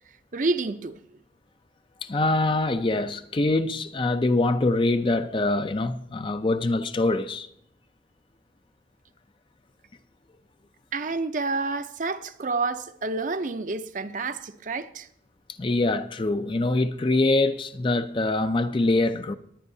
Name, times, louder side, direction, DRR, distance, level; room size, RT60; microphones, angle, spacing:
voice 1, 0.3-1.0 10.9-15.1, right 3 dB, 45° right, 0.6 m, -29 dB
voice 2, 2.0-7.5 15.6-19.3, left 2 dB, 30° left, 0.5 m, -24 dB
20.5 x 9.6 x 2.7 m
head